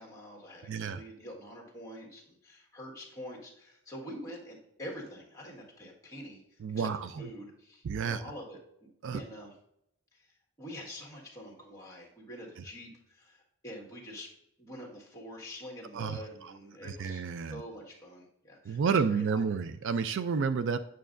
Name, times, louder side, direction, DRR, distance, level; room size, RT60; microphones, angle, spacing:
voice 1, 0.0-6.4 6.8-8.6 9.1-9.5 10.1-10.3 10.6-14.3 14.6-17.2 17.5-19.5, equal, 15° left, -2 dB, 1.6 m, -46 dB
voice 2, 0.7-1.0 6.6-7.1 7.8-8.2 9.0-9.2 15.9-16.5 16.8-17.6 18.7-20.8, right 5 dB, 55° right, 12 dB, 0.3 m, -30 dB
9.1 x 6.3 x 2.6 m, 0.77 s
head